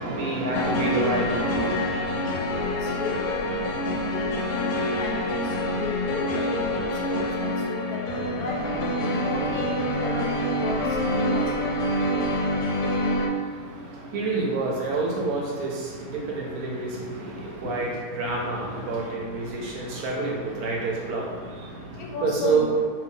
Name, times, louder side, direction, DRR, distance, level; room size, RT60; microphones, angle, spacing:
voice 1, 0.0-1.8 13.4-22.7, right 3 dB, 70° right, -2 dB, 1.1 m, -28 dB
sound 1, 0.5-13.3, left 1 dB, 90° left, 1.2 m, -26 dB
voice 2, 2.1-4.6 4.9-8.7 9.1-11.5 17.6-17.9 18.2-19.2 22.0-22.8, left 3 dB, 70° left, -1 dB, 1.0 m, -35 dB
2.9 x 2.7 x 3.6 m, 1.5 s
omnidirectional pair, 1.7 m